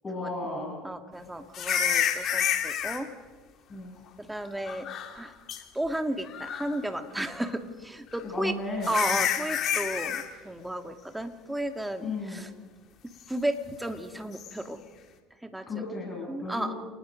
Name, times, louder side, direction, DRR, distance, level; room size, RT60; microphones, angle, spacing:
voice 1, 0.0-0.8 3.7-3.9 8.2-9.3 12.0-12.4 15.7-16.8, left 2 dB, 25° left, -3 dB, 8.0 m, -35 dB
voice 2, 0.8-3.1 4.2-4.9 5.1-5.3 5.7-8.5 8.9-12.5 13.3-14.8 15.4-15.8 16.3-16.7, right 1 dB, 10° right, 7 dB, 2.3 m, -33 dB
sound 1, 1.5-3.0 4.7-5.2 5.5-5.6 6.3-6.8 8.1-8.2 8.8-10.3 14.3-14.5, left 9 dB, 50° left, 2.9 m, -28 dB
28.5 x 20.0 x 5.3 m, 1.3 s
hypercardioid pair, 80°, 0 cm